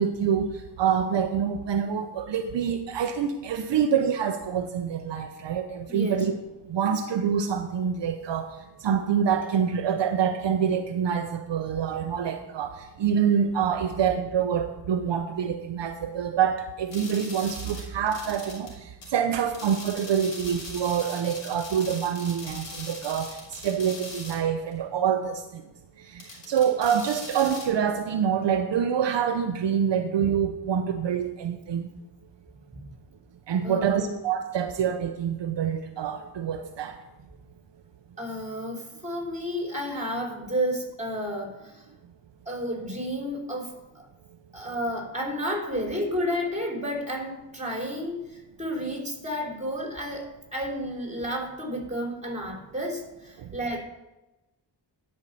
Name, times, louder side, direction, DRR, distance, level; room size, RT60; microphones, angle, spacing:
voice 1, 0.0-6.3 6.7-8.6 8.8-25.6 26.0-31.9 33.5-37.0 53.4-53.6, right 8 dB, 75° right, 7 dB, 0.7 m, -26 dB
voice 2, 5.9-6.3 32.7-32.9 33.6-34.2 38.2-41.9 42.5-44.1 44.5-53.8, equal, 15° right, 1 dB, 3.6 m, -31 dB
sound 1, 16.9-18.7 19.0-19.1 19.5-24.4 24.7-24.8 26.2-27.7, left 2 dB, 80° left, 3.0 m, -41 dB
11.5 x 5.5 x 6.9 m, 1.0 s
cardioid pair, 50°, 43 cm